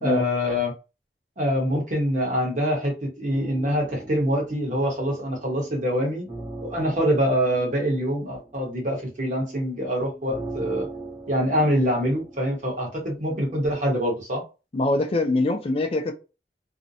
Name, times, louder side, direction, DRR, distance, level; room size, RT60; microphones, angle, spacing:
voice 1, 0.0-0.7 1.4-6.3 6.6-10.9 11.3-14.4, equal, 45° right, 1.0 m, -25 dB
sound 1, 3.3-13.8, right 2 dB, 25° right, 0.6 m, -41 dB
voice 2, 14.7-16.1, left 2 dB, 35° left, 0.4 m, -23 dB
2.5 x 2.1 x 2.7 m
head